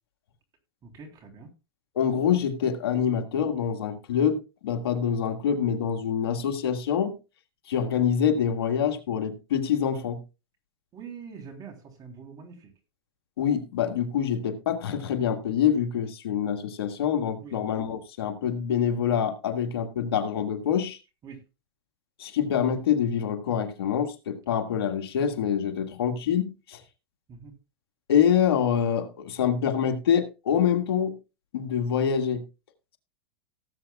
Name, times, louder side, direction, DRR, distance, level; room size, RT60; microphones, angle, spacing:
voice 1, 0.8-1.5 10.9-12.7 17.4-17.6 21.2-21.4 27.3-27.5, right 6 dB, 30° right, 3.4 m, -44 dB
voice 2, 2.0-7.2 7.7-10.2 13.4-21.0 22.2-26.8 28.1-31.2 31.5-32.4, left 8 dB, 80° left, 1.8 m, -26 dB
18.0 x 8.1 x 2.3 m
hypercardioid pair, 125°, 13 cm